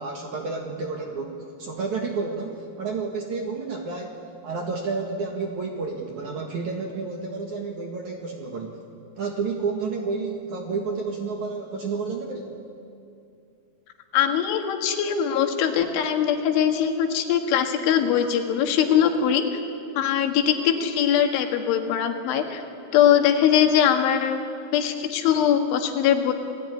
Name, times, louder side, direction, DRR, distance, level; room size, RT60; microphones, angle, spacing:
voice 1, 0.0-8.8 9.2-12.6, right 4 dB, 55° right, 2 dB, 2.3 m, -30 dB
voice 2, 14.1-19.6 20.0-22.6 22.9-24.4 24.7-26.3, left 9 dB, 80° left, 5 dB, 4.2 m, -21 dB
28.5 x 18.5 x 9.8 m, 2.6 s
omnidirectional pair, 5.5 m